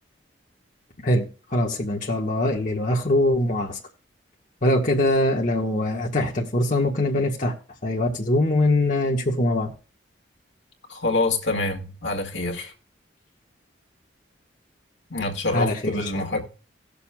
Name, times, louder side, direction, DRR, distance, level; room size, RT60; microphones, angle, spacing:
voice 1, 1.5-3.8 4.6-7.5 7.8-9.7 15.5-16.2, left 1 dB, 45° left, 1.6 m, -22 dB
voice 2, 10.9-12.7 15.1-16.4, left 2 dB, 70° left, 2.0 m, -26 dB
18.0 x 6.9 x 2.3 m
head